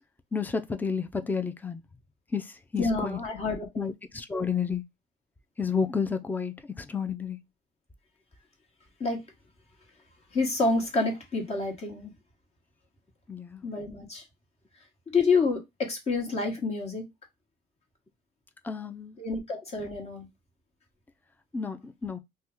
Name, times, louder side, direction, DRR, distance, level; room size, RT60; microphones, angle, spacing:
voice 1, 0.3-1.8 2.3-3.2 3.8-4.8 5.6-7.4 13.3-13.6 18.6-19.2 21.5-22.2, left 5 dB, 10° left, 0.4 m, -31 dB
voice 2, 2.8-3.9 9.0-9.2 10.3-12.1 13.6-14.2 15.1-17.0 19.2-20.3, left 3 dB, 40° left, 1.3 m, -28 dB
2.8 x 2.3 x 3.5 m
cardioid pair, 110°, 17 cm